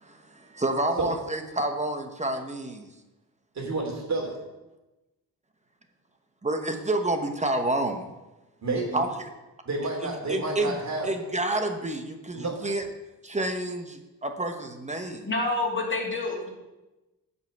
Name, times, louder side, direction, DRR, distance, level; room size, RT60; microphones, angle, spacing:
voice 1, 0.0-2.9 6.4-8.1 8.9-9.1 10.0-10.8 11.0-12.8 13.2-15.3, right 2 dB, 20° right, 5 dB, 1.0 m, -29 dB
voice 2, 3.5-4.4 8.6-9.1 9.6-11.1 12.3-12.5, right 2 dB, 45° right, 0 dB, 3.0 m, -30 dB
voice 3, 15.2-16.5, left 2 dB, 30° left, -2 dB, 2.6 m, -28 dB
8.7 x 5.5 x 7.9 m, 1.0 s
wide cardioid pair, 125°, 37 cm